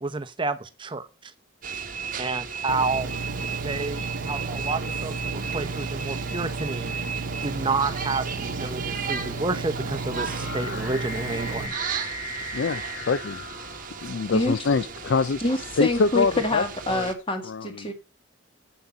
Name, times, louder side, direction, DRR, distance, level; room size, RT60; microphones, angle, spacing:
voice 1, 0.0-1.3 2.2-3.1 3.6-6.9 7.4-11.7, right 3 dB, 25° right, 0.7 m, -30 dB
sound 1, 1.6-17.1, right 6 dB, 40° right, 1.1 m, -35 dB
Engine, 2.7-11.7, right 3 dB, 60° right, 0.8 m, -33 dB
sound 2, 8.2-14.4, left 1 dB, 85° left, 2.2 m, -39 dB
voice 2, 12.5-13.4 14.0-15.4 15.8-17.1 17.4-17.9, left 4 dB, 65° left, 0.4 m, -25 dB
voice 3, 15.4-17.9, left 1 dB, 25° left, 1.8 m, -26 dB
8.3 x 6.2 x 6.8 m
head